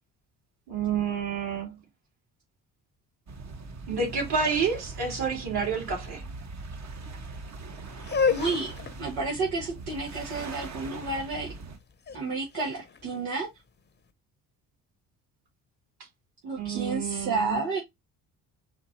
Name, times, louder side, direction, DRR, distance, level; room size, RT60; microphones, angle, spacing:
voice 1, 0.7-1.7 3.9-6.2 16.6-17.6, right 5 dB, 55° right, 2.8 m, -29 dB
sound 1, 3.3-11.8, right 3 dB, 35° right, 1.1 m, -41 dB
sound 2, 8.0-13.9, left 5 dB, 20° left, 0.8 m, -32 dB
voice 2, 8.3-8.7 9.0-11.5 12.1-13.5 16.4-17.8, right 3 dB, 80° right, 1.5 m, -31 dB
4.3 x 3.1 x 4.0 m
hypercardioid pair, 50°, 47 cm